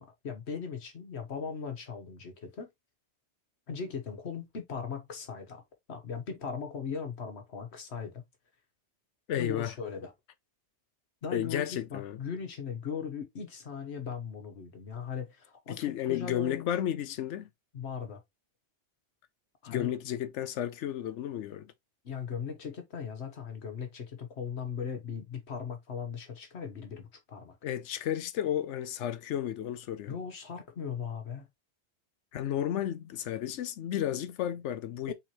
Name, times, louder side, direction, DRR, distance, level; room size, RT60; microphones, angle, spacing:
voice 1, 0.0-2.7 3.7-5.6 5.9-8.2 9.4-10.1 11.2-16.7 17.7-18.2 19.6-19.9 22.0-27.6 30.0-31.5 35.1-35.2, left 6 dB, 70° left, 1.4 m, -38 dB
voice 2, 9.3-9.7 11.3-12.2 15.7-17.5 19.6-21.7 27.6-30.1 32.3-35.1, left 11 dB, 85° left, 0.9 m, -32 dB
4.4 x 3.8 x 3.0 m
omnidirectional pair, 1.2 m